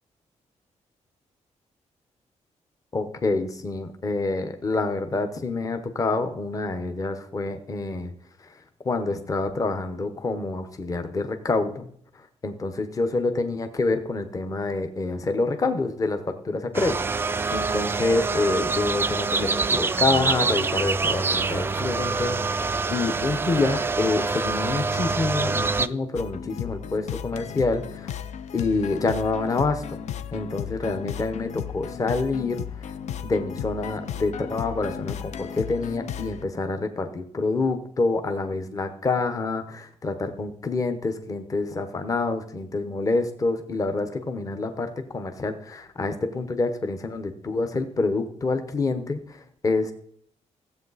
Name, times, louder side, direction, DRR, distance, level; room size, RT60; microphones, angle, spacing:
voice 1, 2.9-8.1 8.4-8.6 8.8-11.9 12.1-28.1 28.5-30.0 30.3-32.9 33.2-49.9, left 3 dB, 30° left, 8 dB, 0.9 m, -27 dB
sound 1, 16.7-25.9, right 4 dB, 20° right, 0.3 m, -25 dB
sound 2, 26.1-36.4, left 9 dB, 70° left, 0.6 m, -35 dB
15.5 x 7.8 x 4.1 m, 0.64 s
wide cardioid pair, 170°, 12 cm